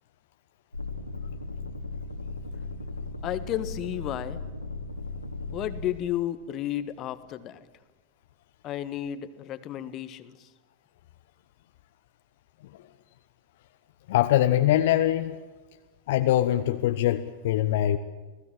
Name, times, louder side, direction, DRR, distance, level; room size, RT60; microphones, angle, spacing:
sound 1, 0.7-5.8 6.5-7.2, left 3 dB, 85° left, 2.9 m, -37 dB
voice 1, 3.2-4.4 5.5-7.6 8.6-10.5, left 12 dB, 35° left, 12 dB, 1.6 m, -32 dB
voice 2, 14.1-15.4 16.1-18.0, left 12 dB, 55° left, 7 dB, 1.1 m, -23 dB
29.5 x 19.5 x 7.5 m, 1.3 s
figure-of-eight pair, 90°, 0 cm